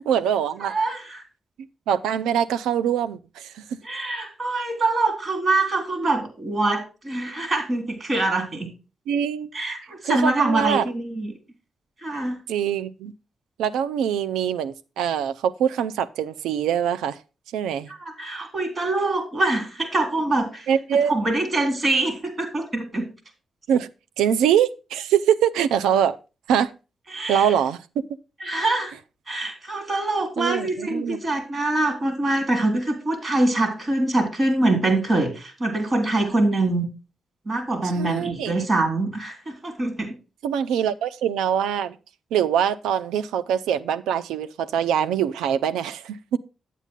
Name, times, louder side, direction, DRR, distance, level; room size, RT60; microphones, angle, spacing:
voice 1, 0.1-0.7 1.9-3.6 9.1-9.5 10.0-10.8 12.5-13.1 13.6-17.2 17.5-17.9 20.7-21.1 23.7-23.9 24.2-26.2 26.5-26.7 27.3-27.8 30.4-31.2 38.0-38.5 40.4-41.9 42.3-46.4, right 9 dB, 90° right, 0.5 m, -23 dB
voice 2, 0.6-1.2 3.8-8.7 9.5-11.3 12.0-12.4 17.9-20.7 20.9-23.1 27.1-27.5 28.4-28.9 29.3-36.9 37.5-40.2, right 2 dB, 45° right, 3.5 m, -24 dB
8.5 x 8.2 x 3.6 m
supercardioid pair, 50°, 0 cm